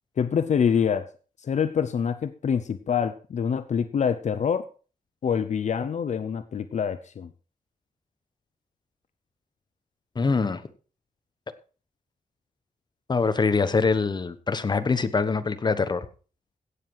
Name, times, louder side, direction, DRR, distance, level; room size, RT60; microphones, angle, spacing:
voice 1, 0.2-1.1 1.4-4.6 5.2-7.3, left 7 dB, 55° left, 11 dB, 0.7 m, -25 dB
voice 2, 10.1-10.6 13.1-16.0, left 4 dB, 30° left, 11 dB, 1.1 m, -24 dB
16.5 x 7.5 x 4.8 m, 0.37 s
wide cardioid pair, 155°, 14 cm